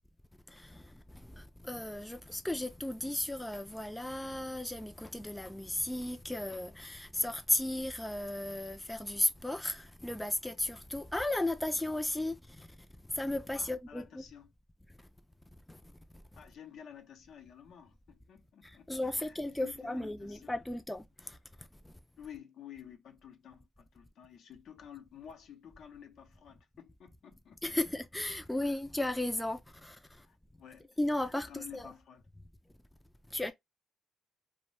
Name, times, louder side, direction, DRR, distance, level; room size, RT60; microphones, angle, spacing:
voice 1, 0.5-12.8 13.1-14.2 15.7-15.8 18.6-21.9 27.6-30.3 31.0-31.9 33.3-33.5, left 1 dB, 10° left, 0.3 m, -35 dB
voice 2, 13.5-14.5 16.4-20.5 22.2-27.8 30.2-31.0 31.5-32.2, left 9 dB, 70° left, 0.6 m, -52 dB
2.6 x 2.1 x 3.0 m
cardioid pair, 90°, 0 cm